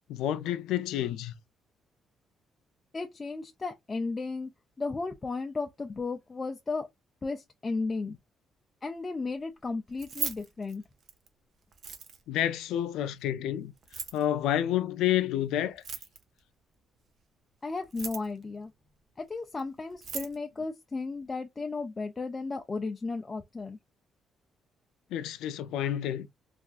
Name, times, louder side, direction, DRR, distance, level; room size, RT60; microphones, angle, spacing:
voice 1, 0.1-1.3 12.3-13.7 14.1-15.8 25.1-26.3, left 11 dB, 90° left, 0.4 m, -29 dB
voice 2, 2.9-4.5 4.8-6.9 7.2-8.2 8.8-10.8 17.6-18.7 19.2-23.8, left 3 dB, 25° left, 0.5 m, -34 dB
Keys jangling, 9.9-11.3 11.7-12.4 13.8-14.2 15.7-16.4 17.8-18.4 19.6-19.7 19.9-20.4, right 6 dB, 55° right, 0.8 m, -38 dB
3.4 x 2.4 x 2.4 m
cardioid pair, 90°, 0 cm